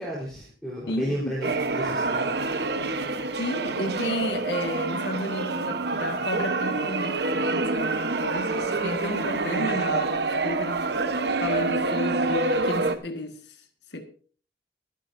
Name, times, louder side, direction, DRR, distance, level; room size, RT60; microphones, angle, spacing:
voice 1, 0.0-2.2, equal, 5° left, 3.9 m, -32 dB
voice 2, 0.9-1.3 3.3-10.9 11.4-13.6 13.9-14.0, left 1 dB, 75° left, 1.7 m, -32 dB
sound 1, 1.4-13.0, right 3 dB, 70° right, 1.0 m, -27 dB
23.5 x 10.0 x 2.6 m
head